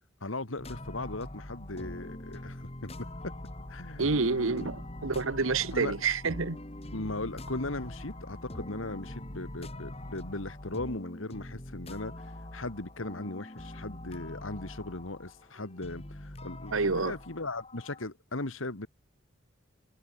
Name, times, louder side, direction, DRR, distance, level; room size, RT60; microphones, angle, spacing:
voice 1, 0.2-3.3 3.7-4.1 4.5-4.7 5.7-5.9 6.9-18.9, left 2 dB, 80° left, 2.3 m, -38 dB
sound 1, 0.6-18.1, left 1 dB, 30° left, 1.9 m, -43 dB
voice 2, 4.0-6.6 16.7-17.1, right 4 dB, 90° right, 1.2 m, -28 dB
head